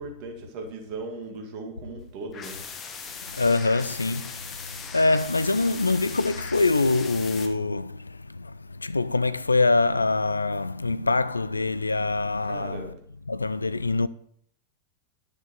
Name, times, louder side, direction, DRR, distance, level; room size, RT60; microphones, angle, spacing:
voice 1, 0.0-2.6 12.4-13.0, right 3 dB, 45° right, 1.9 m, -38 dB
sound 1, 2.3-7.5, left 5 dB, 25° left, 1.2 m, -39 dB
voice 2, 3.3-12.8 13.3-14.1, left 3 dB, 80° left, 0.3 m, -24 dB
10.5 x 6.7 x 4.7 m
figure-of-eight pair, 90°, 0 cm